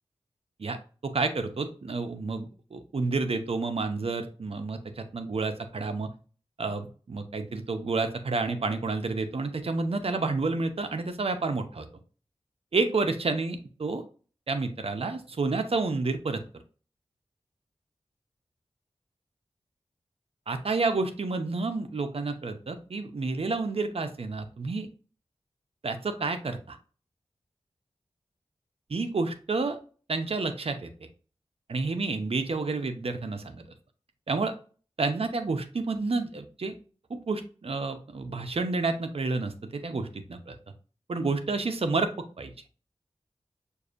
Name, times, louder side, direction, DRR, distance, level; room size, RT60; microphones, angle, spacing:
voice 1, 1.0-6.1 6.6-11.9 12.7-14.0 14.5-16.4 20.5-24.9 25.8-26.8 28.9-29.8 30.1-31.1 31.7-33.6 34.3-34.5 35.0-36.7 37.1-40.6 41.1-42.1 42.4-42.5, right 3 dB, 65° right, 7 dB, 0.7 m, -30 dB
6.4 x 2.6 x 2.5 m, 0.38 s
wide cardioid pair, 55°, 11 cm